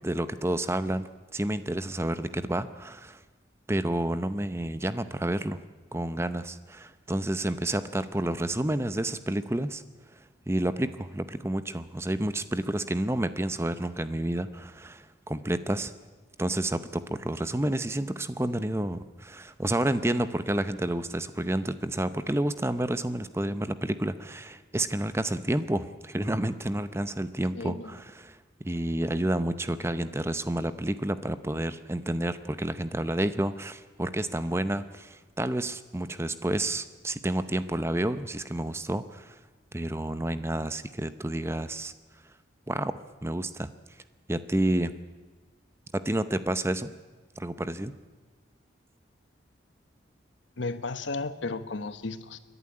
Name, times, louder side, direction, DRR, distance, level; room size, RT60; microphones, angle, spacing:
voice 1, 0.0-3.2 3.7-5.6 5.9-9.8 10.5-15.9 16.4-39.4 39.7-41.9 42.7-42.9 43.2-43.7 44.3-44.9 46.0-46.9 47.4-47.9, right 1 dB, 15° right, 0.7 m, -30 dB
voice 2, 27.5-27.9 50.6-52.4, left 3 dB, 80° left, 1.2 m, -34 dB
29.0 x 11.0 x 9.9 m
head